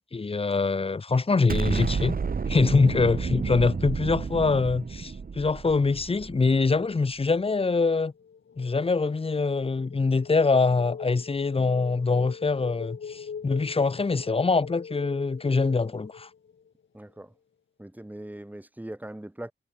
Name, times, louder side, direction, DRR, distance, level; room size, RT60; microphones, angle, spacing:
voice 1, 0.0-2.2 2.5-8.1 8.6-16.3, left 4 dB, 25° left, 1.0 m, -24 dB
Explosion, 1.5-6.7, right 5 dB, 45° right, 1.8 m, -30 dB
sound 1, 8.2-16.9, left 6 dB, 65° left, 4.1 m, -43 dB
voice 2, 16.9-17.3 17.8-19.5, right 1 dB, 10° right, 3.1 m, -40 dB
wide cardioid pair, 115°, 21 cm